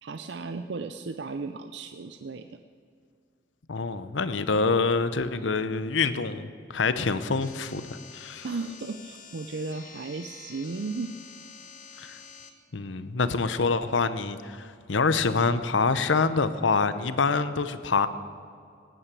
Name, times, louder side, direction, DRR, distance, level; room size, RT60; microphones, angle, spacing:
voice 1, 0.0-2.6 8.4-11.1 13.2-13.3, right 3 dB, 70° right, 8 dB, 0.5 m, -35 dB
voice 2, 3.7-8.5 12.0-12.2 12.7-18.1, left 4 dB, 90° left, 12 dB, 0.8 m, -26 dB
sound 1, 7.4-12.5, left 6 dB, 45° left, 1.4 m, -47 dB
18.0 x 9.0 x 8.4 m, 2.4 s
head